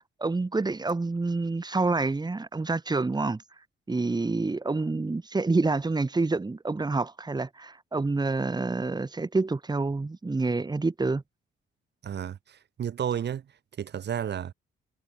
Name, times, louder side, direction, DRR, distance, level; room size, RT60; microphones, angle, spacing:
voice 1, 0.2-3.4 3.9-11.2, right 3 dB, 20° right, 3.5 m, -27 dB
voice 2, 12.0-13.4 13.8-14.5, right 9 dB, 60° right, 4.3 m, -32 dB
cardioid pair, 90°, 20 cm